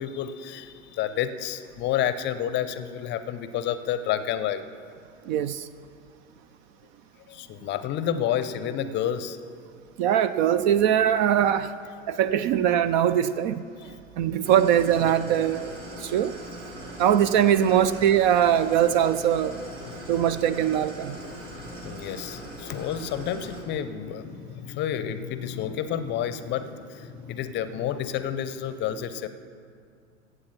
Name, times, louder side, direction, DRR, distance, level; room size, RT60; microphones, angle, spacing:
voice 1, 0.0-4.6 7.3-9.4 13.8-13.9 19.8-20.1 21.3-29.3, left 10 dB, 30° left, 12 dB, 0.7 m, -30 dB
voice 2, 5.2-5.7 10.0-11.7 12.1-15.7 16.0-16.4 17.0-19.6 20.1-21.2, right 10 dB, 40° right, 14 dB, 0.4 m, -22 dB
Idling, 14.4-23.6, right 1 dB, 75° right, 2.8 m, -40 dB
16.0 x 8.1 x 5.8 m, 2.3 s
figure-of-eight pair, 90°, 38 cm